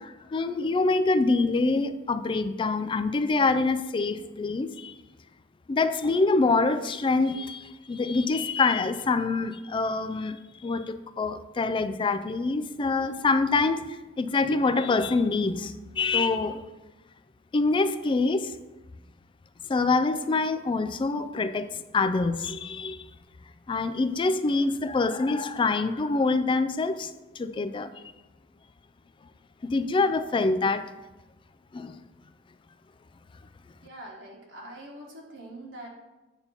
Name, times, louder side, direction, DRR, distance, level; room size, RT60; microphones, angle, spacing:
voice 1, 0.0-4.9 5.7-16.6 17.5-18.5 19.7-23.1 23.7-27.1 27.4-27.9 29.6-30.8 31.7-32.0, left 3 dB, 25° left, 12 dB, 0.3 m, -25 dB
voice 2, 33.8-35.9, right 1 dB, 70° right, -3 dB, 1.3 m, -43 dB
8.7 x 2.9 x 5.5 m, 1.1 s
head